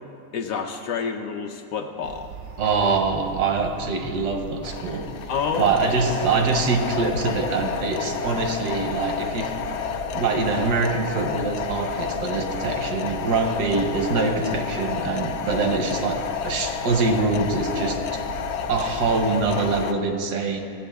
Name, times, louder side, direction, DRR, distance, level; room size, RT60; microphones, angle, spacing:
voice 1, 0.3-2.3 5.3-5.7, left 6 dB, 70° left, 5 dB, 0.9 m, -28 dB
sound 1, 2.0-19.9, right 6 dB, 65° right, 0.7 m, -39 dB
voice 2, 2.6-5.1 5.6-18.0 18.7-20.6, right 4 dB, 90° right, 4 dB, 1.5 m, -24 dB
sound 2, 4.6-19.9, left 8 dB, 90° left, 1.2 m, -30 dB
16.0 x 7.7 x 3.5 m, 2.4 s
omnidirectional pair, 1.7 m